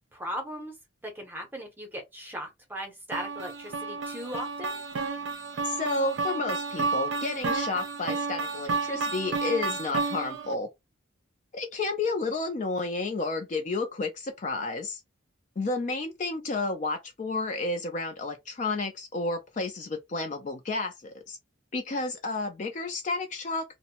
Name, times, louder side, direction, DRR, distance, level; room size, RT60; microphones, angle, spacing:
voice 1, 0.1-0.7 1.0-4.8, equal, 10° right, 0.7 m, -38 dB
sound 1, 3.1-10.5, right 4 dB, 60° right, 0.4 m, -31 dB
voice 2, 5.6-10.7 11.5-15.0 15.6-21.4 21.7-23.8, left 3 dB, 35° left, 0.3 m, -31 dB
2.6 x 2.0 x 2.8 m
head